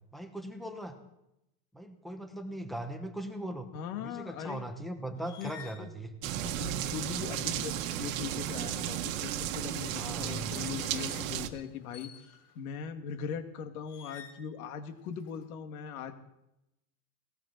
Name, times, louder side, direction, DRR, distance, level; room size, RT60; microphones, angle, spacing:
voice 1, 0.1-1.0 1.7-3.7 4.0-6.5 9.9-10.7, right 1 dB, ahead, 5 dB, 1.0 m, -40 dB
voice 2, 3.7-4.7 5.2-5.5 5.8-5.9 6.4-16.1, left 7 dB, 70° left, 6 dB, 2.2 m, -40 dB
sound 1, 5.2-5.9 7.2-8.6 9.6-12.6 13.9-14.5 14.9-15.5, left 7 dB, 55° left, 4.8 m, -52 dB
sound 2, 6.2-11.5, right 11 dB, 60° right, 1.4 m, -34 dB
19.0 x 18.5 x 4.0 m, 0.86 s
supercardioid pair, 175°, 44 cm